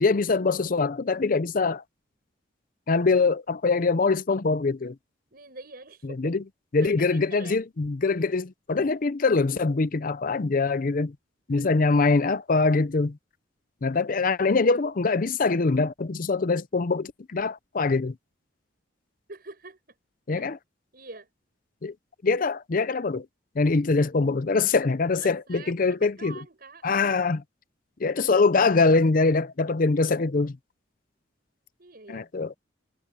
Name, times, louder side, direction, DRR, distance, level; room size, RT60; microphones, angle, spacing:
voice 1, 0.0-1.8 2.9-5.0 6.0-6.4 6.7-11.1 11.5-13.2 13.8-18.1 20.3-20.6 21.8-21.9 22.2-23.3 23.6-26.4 26.8-27.4 28.0-30.6 32.1-32.5, left 3 dB, 45° left, 0.5 m, -23 dB
voice 2, 5.3-6.3 6.8-7.6 11.5-12.0 19.3-19.8 20.3-20.5 20.9-21.3 25.2-27.4 31.8-32.3, right 3 dB, 50° right, 6.8 m, -45 dB
head